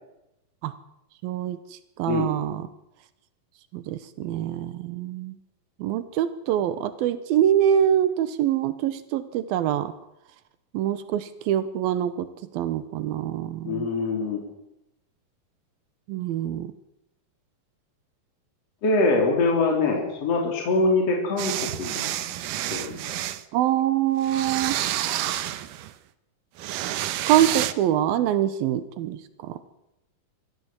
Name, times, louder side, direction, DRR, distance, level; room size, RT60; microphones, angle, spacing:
voice 1, 1.2-1.6 2.0-2.6 3.7-5.4 5.8-9.9 10.7-12.3 12.5-13.9 16.1-16.7 23.5-24.8 27.3-29.6, right 11 dB, 90° right, 13 dB, 2.9 m, -24 dB
voice 2, 13.7-14.4 18.8-22.1 22.7-23.2, left 3 dB, 45° left, 1 dB, 4.4 m, -24 dB
sound 1, 21.4-23.4 24.2-25.9 26.6-27.7, right 13 dB, 75° right, 2.4 m, -29 dB
24.0 x 14.5 x 7.6 m, 0.87 s
omnidirectional pair, 4.1 m